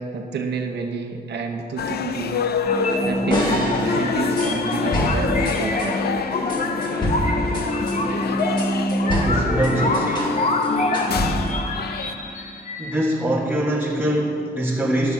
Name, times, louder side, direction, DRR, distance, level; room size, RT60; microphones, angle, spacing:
voice 1, 0.0-2.5 2.8-6.0, right 4 dB, 75° right, 2 dB, 0.9 m, -29 dB
sound 1, 1.8-12.1, left 6 dB, 65° left, 0.6 m, -28 dB
sound 2, 2.7-13.3, left 1 dB, 45° left, 1.1 m, -25 dB
sound 3, 3.3-5.9 6.5-10.4 10.6-11.7, equal, 25° left, 2.5 m, -27 dB
voice 2, 9.2-10.4 12.8-15.1, right 1 dB, 10° right, -7 dB, 1.6 m, -23 dB
10.5 x 6.8 x 6.0 m, 2.5 s
cardioid pair, 80°, 17 cm